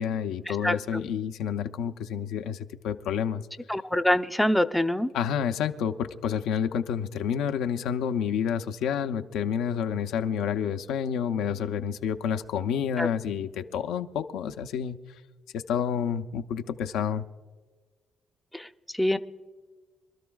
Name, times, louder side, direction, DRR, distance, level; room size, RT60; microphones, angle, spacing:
voice 1, 0.0-3.5 5.1-15.0 15.5-17.3, left 8 dB, 90° left, 6 dB, 0.7 m, -29 dB
voice 2, 3.7-5.1 13.0-13.1 18.5-18.7 19.0-19.2, left 1 dB, 5° left, 9 dB, 0.6 m, -24 dB
26.5 x 12.5 x 2.4 m, 1.4 s
cardioid pair, 90°, 0 cm